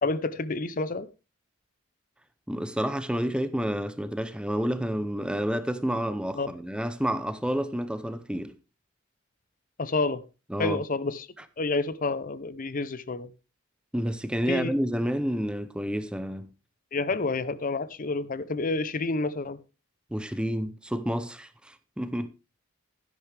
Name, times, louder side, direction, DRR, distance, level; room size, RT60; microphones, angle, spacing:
voice 1, 0.0-1.1 6.3-6.5 9.8-10.2 10.6-11.3 11.6-13.3 14.5-14.7 16.9-19.6, left 3 dB, 40° left, 0.6 m, -29 dB
voice 2, 2.5-8.5 10.5-10.8 13.9-16.5 20.1-22.3, equal, 5° right, 0.6 m, -29 dB
12.0 x 10.5 x 3.4 m
head